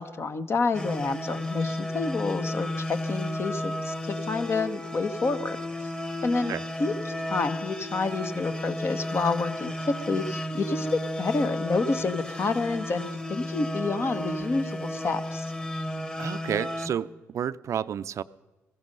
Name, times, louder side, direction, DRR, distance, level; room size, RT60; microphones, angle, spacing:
voice 1, 0.0-5.6 6.2-6.5 6.8-15.5, left 4 dB, 45° left, 10 dB, 1.3 m, -29 dB
sound 1, 0.7-16.9, left 1 dB, 15° left, 1.7 m, -33 dB
voice 2, 16.2-18.2, right 9 dB, 60° right, 16 dB, 0.5 m, -31 dB
16.0 x 15.5 x 5.4 m, 1.1 s
supercardioid pair, 60°, 6 cm